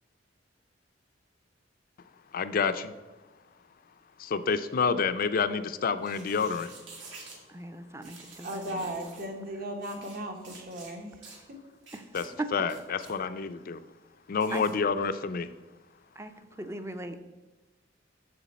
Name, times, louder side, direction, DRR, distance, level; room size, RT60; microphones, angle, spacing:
voice 1, 2.3-2.9 4.2-6.7 12.1-13.8 14.3-15.5, left 5 dB, 45° left, 12 dB, 0.4 m, -28 dB
sound 1, 6.0-7.4 8.0-9.3 9.8-10.2 10.4-10.9 11.2-11.4 11.8-12.3 12.6-13.2 14.4-14.7, right 3 dB, 70° right, 1.9 m, -49 dB
voice 2, 7.5-8.9 11.9-12.1 12.4-12.5 14.5-14.7 16.2-16.3 16.6-17.2, right 2 dB, 15° right, 9 dB, 0.5 m, -38 dB
voice 3, 8.3-11.6, right 1 dB, 50° right, 4 dB, 1.2 m, -37 dB
6.9 x 6.8 x 4.2 m, 1.2 s
head